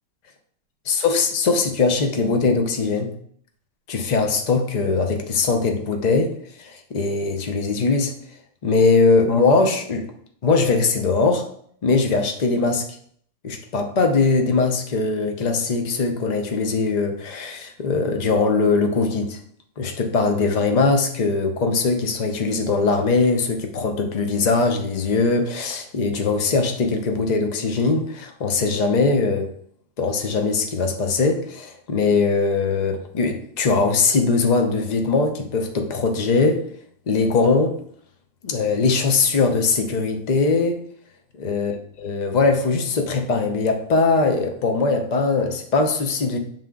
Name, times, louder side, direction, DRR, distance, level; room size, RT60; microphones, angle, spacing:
voice 1, 0.9-3.1 3.9-6.3 6.6-8.1 8.6-10.1 10.4-11.5 11.8-12.8 13.4-19.4 19.8-29.5 30.0-36.6 37.1-37.8 38.4-40.8 41.4-41.7 42.0-46.4, left 4 dB, 45° left, 5 dB, 0.5 m, -21 dB
7.6 x 3.6 x 3.7 m, 0.62 s
omnidirectional pair, 1.8 m